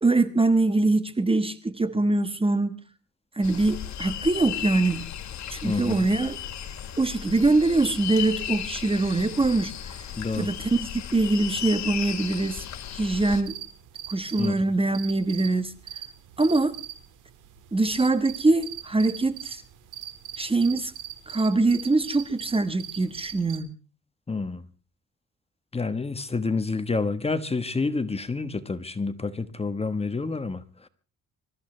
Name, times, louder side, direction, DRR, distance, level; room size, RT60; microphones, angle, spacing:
voice 1, 0.0-2.8 3.3-5.0 5.5-6.4 7.0-10.0 10.4-12.6 12.9-13.6 14.1-15.7 16.4-16.8 17.7-19.6 20.4-20.9 21.3-23.7, right 2 dB, 20° right, 1.2 m, -23 dB
sound 1, 3.4-13.4, left 10 dB, 65° left, 2.3 m, -35 dB
voice 2, 5.6-6.1 10.2-10.5 14.4-14.6 24.3-24.6 25.7-30.9, left 3 dB, 20° left, 1.3 m, -28 dB
sound 2, 13.4-23.6, right 11 dB, 85° right, 2.3 m, -41 dB
25.0 x 14.0 x 3.3 m
cardioid pair, 90°, 30 cm